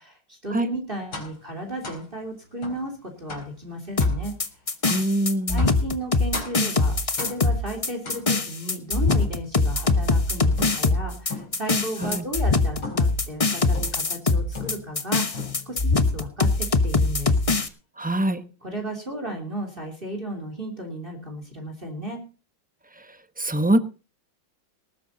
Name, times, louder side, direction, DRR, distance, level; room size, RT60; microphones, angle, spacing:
voice 1, 0.0-4.3 5.5-17.4 18.6-22.2, right 1 dB, 25° right, 4 dB, 3.4 m, -34 dB
sound 1, 1.1-1.4 1.8-2.1 2.6-2.8 3.3-3.6 4.0-4.2 4.9-5.1 5.6-5.9 6.3-6.7 7.2-7.6 8.0-8.6 9.1-10.2 10.6-11.0 11.3-11.7 12.0-12.3 12.8-13.2 13.7-14.1 14.5-15.0 15.3-15.8, left 4 dB, 90° left, 4.9 m, -37 dB
sound 2, 4.0-17.7, left 3 dB, 25° left, 0.7 m, -22 dB
voice 2, 4.9-5.7 12.0-12.2 18.0-18.4 23.0-23.8, right 1 dB, 10° right, 11 dB, 0.5 m, -24 dB
19.5 x 10.0 x 4.0 m, 0.35 s
omnidirectional pair, 2.2 m